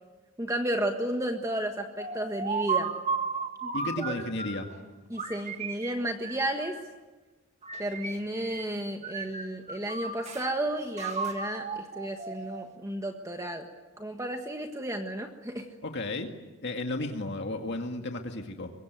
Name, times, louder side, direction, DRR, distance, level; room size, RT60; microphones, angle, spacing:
voice 1, 0.4-2.9 3.6-3.7 4.0-4.2 5.1-6.8 7.8-13.7 14.0-15.7, right 1 dB, 15° right, 4 dB, 1.5 m, -32 dB
sound 1, 2.0-4.7 5.2-7.0 7.6-8.8 9.0-10.5 11.0-12.8, right 5 dB, 30° right, 1.9 m, -34 dB
voice 2, 3.7-4.7 15.8-16.3 16.6-18.7, left 2 dB, 50° left, 4 dB, 2.1 m, -33 dB
24.0 x 23.0 x 9.4 m, 1.2 s
head